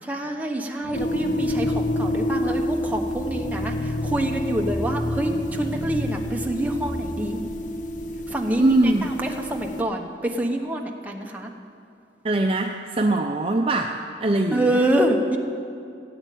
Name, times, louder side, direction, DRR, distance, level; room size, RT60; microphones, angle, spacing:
voice 1, 0.0-7.4 8.3-8.7 9.1-11.5 14.5-15.4, right 1 dB, 10° right, 1 dB, 1.1 m, -26 dB
sound 1, 0.8-7.0, left 1 dB, 70° left, 3.5 m, -32 dB
sound 2, 0.9-9.8, left 1 dB, 45° left, 0.8 m, -29 dB
voice 2, 8.6-9.1 12.2-14.8, right 2 dB, 30° right, 3 dB, 0.6 m, -22 dB
16.0 x 8.0 x 9.2 m, 2.4 s
head